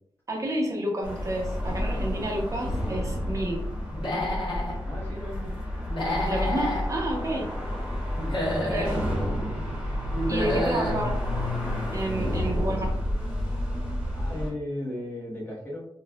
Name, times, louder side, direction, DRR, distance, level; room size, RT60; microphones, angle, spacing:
voice 1, 0.3-3.7 6.2-7.5 8.6-9.0 10.3-11.2 11.9-12.9, right 1 dB, 35° right, 0 dB, 0.8 m, -30 dB
sound 1, 1.0-14.5, left 1 dB, 10° right, 1.1 m, -30 dB
Human voice / Animal, 3.9-4.7 5.9-6.9 8.1-9.0 10.1-11.0, left 1 dB, 65° left, 1.4 m, -29 dB
voice 2, 4.9-5.5 8.6-9.4 10.5-11.0 12.1-13.0 14.1-15.9, left 1 dB, 20° left, -6 dB, 1.2 m, -36 dB
4.3 x 2.4 x 2.3 m, 0.71 s
wide cardioid pair, 135°, 9 cm